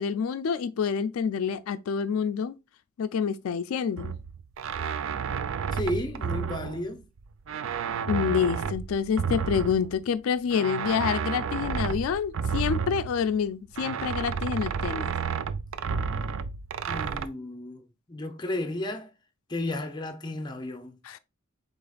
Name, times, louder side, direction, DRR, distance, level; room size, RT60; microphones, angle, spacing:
voice 1, 0.0-2.6 3.0-4.1 8.1-15.1 21.0-21.2, left 7 dB, 85° left, 0.3 m, -27 dB
sound 1, 4.0-7.2 7.5-10.1 10.5-13.5 13.8-17.3, right 6 dB, 70° right, 0.4 m, -31 dB
voice 2, 5.7-7.0 16.9-19.1 19.5-21.0, left 1 dB, 20° left, 0.6 m, -33 dB
5.0 x 4.0 x 2.3 m
head